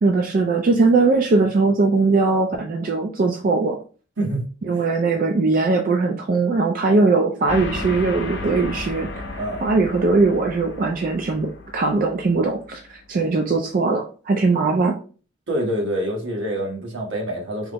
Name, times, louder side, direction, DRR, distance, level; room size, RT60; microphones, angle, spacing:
voice 1, 0.0-3.8 4.7-15.0, right 3 dB, 45° right, 3 dB, 0.3 m, -20 dB
sound 1, 7.5-13.3, left 2 dB, 65° left, 0.6 m, -34 dB
voice 2, 15.5-17.7, right 1 dB, 80° right, 0 dB, 1.1 m, -26 dB
3.4 x 2.0 x 3.3 m, 0.38 s
head